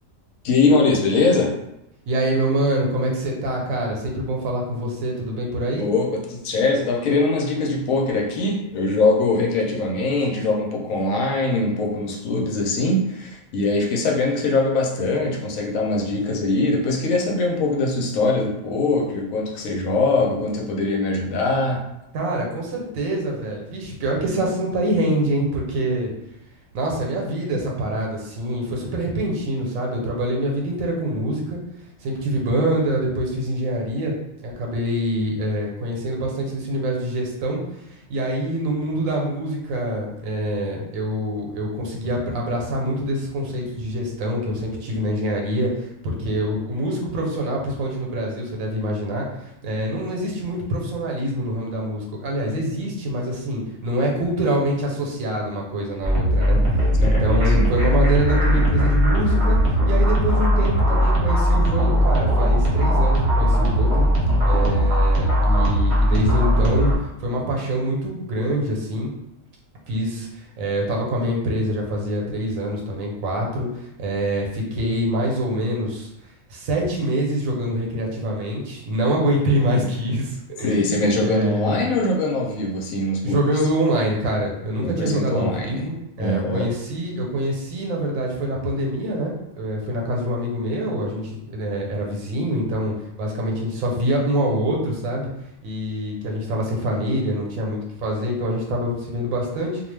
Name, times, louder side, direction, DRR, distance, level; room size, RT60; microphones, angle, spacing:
voice 1, 0.4-1.5 5.8-21.8 57.0-57.2 80.6-83.4 84.8-85.8 86.2-86.7, left 2 dB, 80° left, 0 dB, 1.0 m, -22 dB
voice 2, 2.1-5.9 22.1-26.1 26.7-31.6 32.0-34.1 34.4-37.6 38.1-56.6 57.0-59.6 59.8-64.1 64.4-69.1 69.9-73.7 74.0-76.1 76.5-81.8 83.2-95.3 95.6-99.8, right 1 dB, 90° right, -1 dB, 1.1 m, -25 dB
sound 1, 56.0-66.9, equal, 60° right, 1.0 m, -18 dB
2.4 x 2.2 x 3.2 m, 0.87 s
omnidirectional pair, 1.4 m